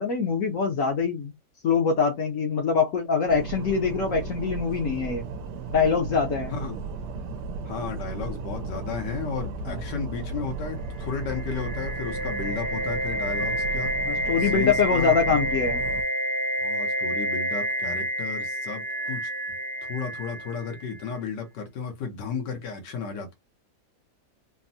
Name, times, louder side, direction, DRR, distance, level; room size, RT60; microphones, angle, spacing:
voice 1, 0.0-1.3 1.6-5.3 5.7-6.5 9.7-9.8 14.0-15.8, left 5 dB, 60° left, 0.9 m, -24 dB
sound 1, 3.3-16.0, right 4 dB, 80° right, 1.2 m, -35 dB
voice 2, 6.5-6.9 7.7-13.9 14.2-15.4 16.6-19.3 19.9-23.3, left 5 dB, 85° left, 1.4 m, -34 dB
sound 2, 11.1-20.9, equal, 15° right, 0.6 m, -29 dB
3.5 x 2.0 x 2.6 m
omnidirectional pair, 1.8 m